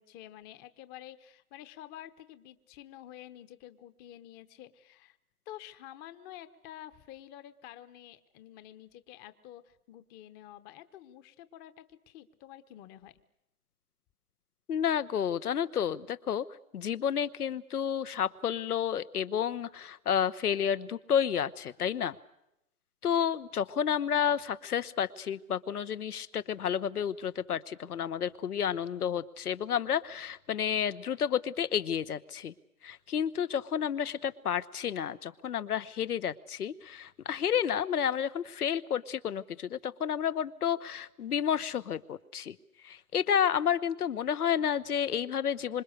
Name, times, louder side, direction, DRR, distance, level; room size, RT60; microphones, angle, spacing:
voice 1, 0.0-5.2 5.5-13.1, left 12 dB, 20° left, 13 dB, 1.0 m, -49 dB
voice 2, 14.7-16.4 16.7-22.2 23.0-32.5 32.8-42.6 42.8-45.8, left 8 dB, 80° left, 13 dB, 1.2 m, -31 dB
26.0 x 26.0 x 6.6 m, 0.83 s
hypercardioid pair, 140°, 45 cm